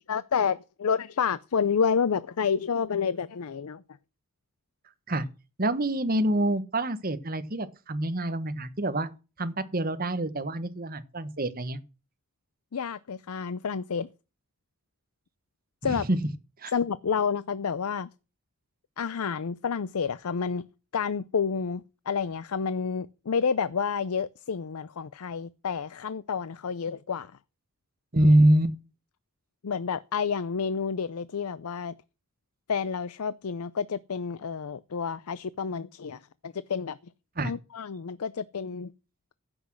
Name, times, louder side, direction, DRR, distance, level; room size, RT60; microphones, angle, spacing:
voice 1, 0.1-3.8 12.7-14.1 15.8-16.0 16.7-18.1 19.0-20.6 20.9-27.3 28.2-28.3 29.6-31.9 32.7-37.0 37.4-38.9, left 6 dB, 85° left, 0.5 m, -29 dB
voice 2, 5.6-9.1 9.4-11.8 15.9-16.2 16.6-16.7 28.1-28.7 37.4-37.5, right 1 dB, 40° right, 1.3 m, -25 dB
14.5 x 6.2 x 6.3 m
head